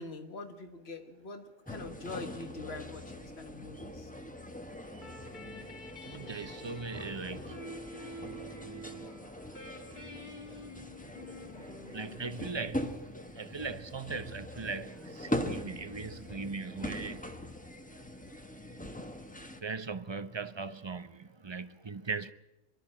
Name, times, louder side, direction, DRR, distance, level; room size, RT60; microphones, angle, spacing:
voice 1, 0.0-4.1, left 3 dB, 65° left, 1.8 m, -44 dB
sound 1, 1.7-19.6, left 1 dB, 10° left, 1.1 m, -42 dB
sound 2, 5.0-13.5, equal, 45° left, 2.1 m, -49 dB
voice 2, 6.1-7.4 11.9-12.9 13.4-17.2 19.6-21.1 21.4-22.3, right 4 dB, 30° right, 0.7 m, -39 dB
24.5 x 12.5 x 8.8 m
omnidirectional pair, 1.1 m